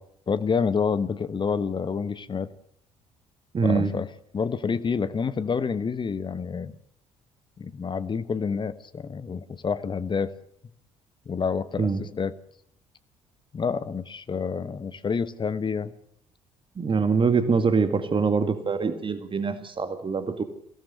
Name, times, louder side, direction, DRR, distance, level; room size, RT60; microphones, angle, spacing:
voice 1, 0.3-2.5 3.6-4.1 4.3-6.7 7.6-10.3 11.3-12.3 13.5-15.9, left 5 dB, 30° left, 14 dB, 1.2 m, -28 dB
voice 2, 3.5-3.9 11.8-12.0 16.8-20.4, right 5 dB, 30° right, 10 dB, 2.1 m, -24 dB
23.5 x 17.0 x 7.8 m, 0.69 s
figure-of-eight pair, 50°, 17 cm